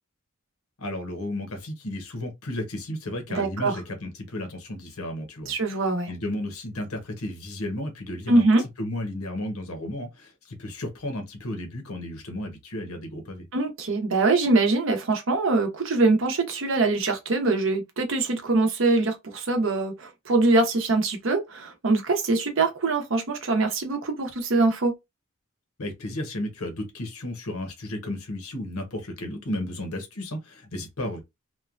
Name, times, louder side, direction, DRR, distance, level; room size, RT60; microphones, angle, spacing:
voice 1, 0.8-5.5 6.1-8.4 8.8-13.5 25.8-31.2, left 1 dB, 85° left, 0.9 m, -33 dB
voice 2, 3.3-3.8 5.5-6.1 8.3-8.6 13.5-24.9, right 3 dB, 60° right, 0.7 m, -23 dB
3.0 x 2.2 x 2.4 m
head